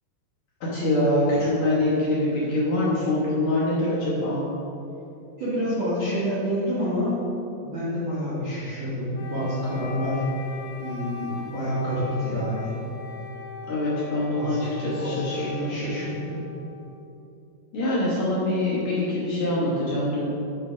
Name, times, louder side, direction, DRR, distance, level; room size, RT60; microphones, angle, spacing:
voice 1, 0.7-4.4 13.7-15.7 17.7-20.3, left 1 dB, 60° left, -8 dB, 2.1 m, -24 dB
voice 2, 5.4-7.2 7.6-10.2 10.8-12.7 14.4-14.7 14.9-16.4, equal, 55° right, -11 dB, 1.4 m, -28 dB
Wind instrument woodwind instrument, 9.1-17.2, left 5 dB, 75° left, 2.6 m, -40 dB
8.3 x 4.6 x 4.9 m, 2.8 s
omnidirectional pair, 4.6 m